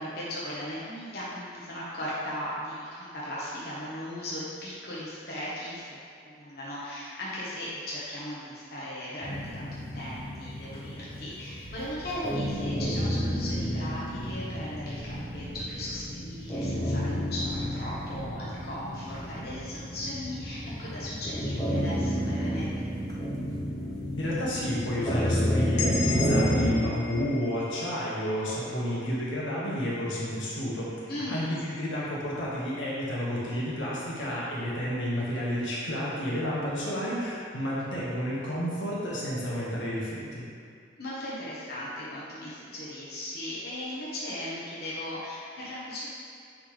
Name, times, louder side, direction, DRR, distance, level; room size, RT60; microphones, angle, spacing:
voice 1, 0.0-22.9 31.1-31.5 41.0-46.1, left 1 dB, 55° left, -8 dB, 1.2 m, -37 dB
sound 1, 9.2-26.7, equal, 20° left, 0.8 m, -31 dB
sound 2, 11.6-19.7, equal, 85° right, 0.6 m, -50 dB
voice 2, 24.2-30.9 31.3-40.4, equal, 90° left, -7 dB, 1.7 m, -31 dB
sound 3, 25.8-29.6, left 4 dB, 70° left, 0.6 m, -37 dB
9.5 x 4.0 x 3.3 m, 2.3 s
head